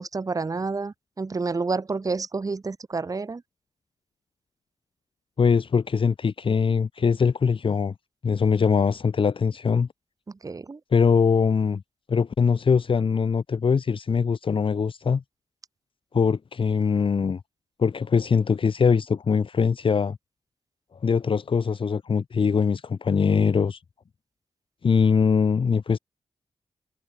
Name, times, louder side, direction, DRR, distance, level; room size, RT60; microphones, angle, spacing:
voice 1, 0.0-3.4 10.4-10.8, right 4 dB, 35° right, 1.2 m, -29 dB
voice 2, 5.4-7.9 8.2-9.9 10.9-11.8 12.1-15.2 16.1-17.4 17.8-20.2 21.0-23.8 24.8-26.0, left 6 dB, 55° left, 1.5 m, -22 dB
cardioid pair, 75°, 11 cm